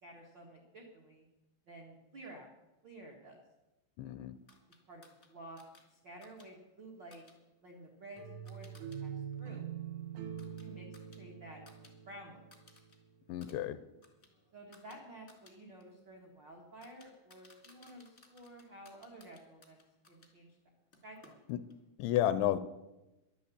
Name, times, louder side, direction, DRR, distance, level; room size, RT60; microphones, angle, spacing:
voice 1, 0.0-1.3 1.7-2.5 2.8-3.4 4.9-5.6 5.9-7.2 7.6-9.7 10.4-10.9 11.2-12.4 14.5-19.8 20.1-20.6 21.0-21.4, right 1 dB, 70° right, 0 dB, 1.1 m, -52 dB
voice 2, 4.0-4.3 13.3-13.8 21.5-21.6 22.0-22.6, left 12 dB, 80° left, 13 dB, 2.8 m, -31 dB
sound 1, 4.5-9.0 9.3-11.9 12.2-13.0 13.3-20.3 20.9-21.8, left 3 dB, 40° left, 0.9 m, -64 dB
sound 2, 8.2-13.1, right 8 dB, 90° right, 4.2 m, -44 dB
11.5 x 11.0 x 8.6 m, 1.0 s
omnidirectional pair, 5.5 m